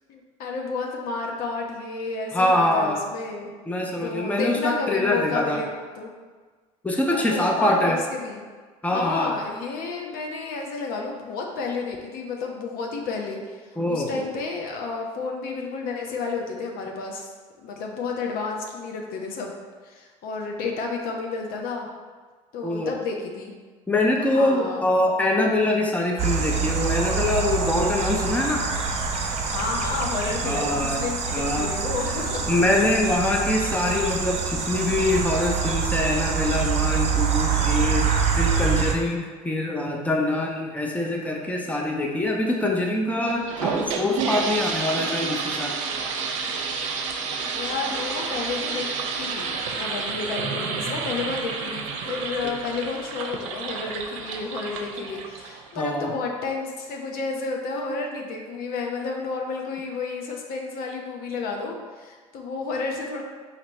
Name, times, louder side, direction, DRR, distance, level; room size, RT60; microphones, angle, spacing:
voice 1, 0.1-3.5 3.8-5.7 6.0-6.1 7.1-8.4 8.9-17.3 17.6-19.6 19.8-21.9 22.5-23.5 24.2-24.8 29.5-32.5 47.4-48.9 49.2-63.2, left 4 dB, 65° left, 1 dB, 0.8 m, -31 dB
voice 2, 2.3-3.0 3.7-5.6 6.8-8.0 8.8-9.4 13.8-14.2 22.6-23.0 23.9-28.7 30.4-31.0 31.3-31.7 32.5-45.8 52.4-52.5 55.8-56.1, left 1 dB, 10° left, 0 dB, 0.7 m, -24 dB
sound 1, 26.2-39.0, right 6 dB, 45° right, 0.8 m, -25 dB
sound 2, 43.3-55.8, right 5 dB, 85° right, 0.5 m, -30 dB
4.0 x 2.9 x 4.3 m, 1.5 s
hypercardioid pair, 65°, 16 cm